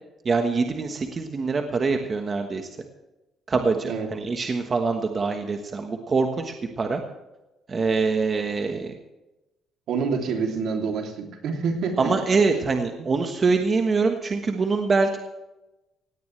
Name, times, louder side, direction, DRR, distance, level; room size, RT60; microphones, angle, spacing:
voice 1, 0.2-2.7 3.5-7.0 7.7-8.9 12.0-15.2, right 4 dB, 30° right, 4 dB, 1.3 m, -24 dB
voice 2, 9.9-12.2, right 5 dB, 65° right, 3 dB, 3.1 m, -27 dB
17.5 x 17.5 x 3.3 m, 0.99 s
cardioid pair, 150°, 0 cm